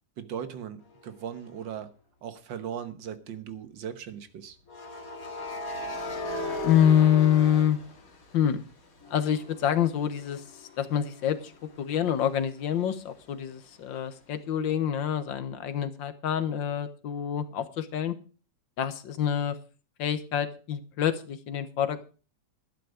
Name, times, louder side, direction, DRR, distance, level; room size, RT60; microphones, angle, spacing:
voice 1, 0.2-1.9 2.2-4.6, right 8 dB, 85° right, 1.9 m, -38 dB
sound 1, 1.4-1.6 4.7-8.6 9.0-12.5, left 3 dB, 50° left, 2.4 m, -37 dB
voice 2, 6.6-7.8 8.3-8.6 9.1-11.5 11.8-18.2 18.8-19.6 20.0-22.1, left 9 dB, 90° left, 1.8 m, -26 dB
12.0 x 10.5 x 4.9 m
omnidirectional pair, 2.0 m